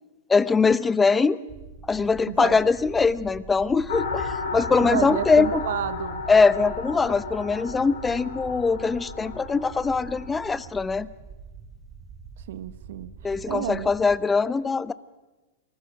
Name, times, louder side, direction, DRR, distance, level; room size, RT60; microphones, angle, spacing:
voice 1, 0.3-1.4 1.9-5.6 6.3-11.1 13.2-14.9, left 4 dB, 10° left, 18 dB, 0.7 m, -22 dB
sound 1, 1.5-14.2, right 5 dB, 25° right, 5.8 m, -44 dB
voice 2, 2.3-2.6 4.8-6.2 12.5-13.9, right 12 dB, 70° right, 13 dB, 0.9 m, -31 dB
sound 2, 3.9-10.7, left 4 dB, 85° left, 4.7 m, -34 dB
28.0 x 19.5 x 6.4 m, 1.1 s
hypercardioid pair, 135°, 0 cm